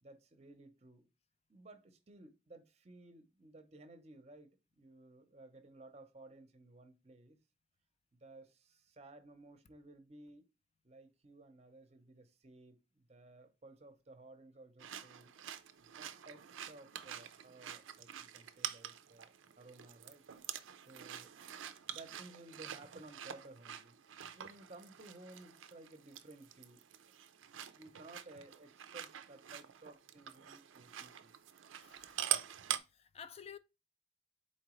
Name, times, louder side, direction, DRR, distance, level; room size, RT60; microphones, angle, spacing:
voice 1, 0.0-1.1 1.5-7.4 8.2-10.5 10.8-15.3 15.8-20.2 20.8-21.3 21.9-24.0 24.3-27.0 27.7-31.3, right 2 dB, 35° right, 0.7 m, -57 dB
sound 1, 14.8-32.8, right 11 dB, 80° right, 0.5 m, -45 dB
voice 2, 31.8-32.2 32.6-33.6, left 7 dB, 30° left, 0.4 m, -52 dB
4.2 x 3.8 x 3.0 m
head